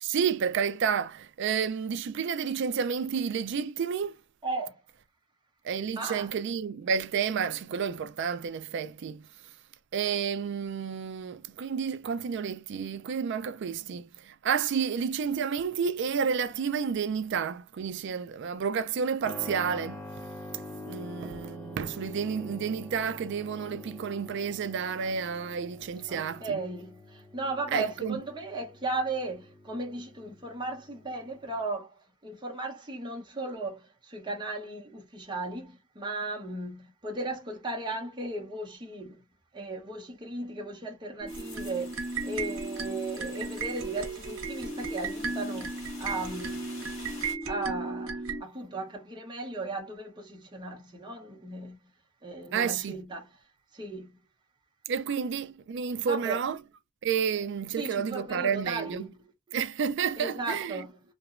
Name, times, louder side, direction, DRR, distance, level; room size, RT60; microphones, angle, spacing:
voice 1, 0.0-4.2 5.6-9.2 9.9-20.3 20.8-26.6 27.7-28.2 52.5-53.0 54.9-56.6 57.0-59.1 59.5-60.8, right 6 dB, 60° right, 0.3 m, -30 dB
voice 2, 4.4-4.8 6.0-6.3 26.1-39.2 39.5-42.0 42.2-46.6 47.5-51.8 52.2-53.3 53.7-54.1 56.1-56.4 57.8-59.2 60.2-60.9, right 2 dB, 20° right, 0.8 m, -36 dB
Keyboard (musical), 19.2-31.6, left 2 dB, 5° left, 0.5 m, -46 dB
sound 1, 41.2-48.4, right 3 dB, 85° right, 0.7 m, -35 dB
sound 2, 41.3-47.4, left 2 dB, 65° left, 1.7 m, -48 dB
2.9 x 2.1 x 2.4 m
head